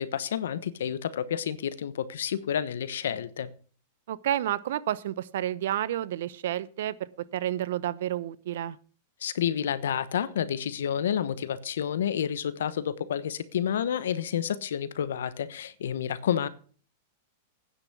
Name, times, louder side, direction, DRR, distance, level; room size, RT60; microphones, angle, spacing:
voice 1, 0.0-3.5 9.2-16.5, left 9 dB, 80° left, 1.1 m, -30 dB
voice 2, 4.1-8.8, right 12 dB, 70° right, 0.7 m, -30 dB
9.6 x 6.2 x 8.3 m
hypercardioid pair, 120°, 0 cm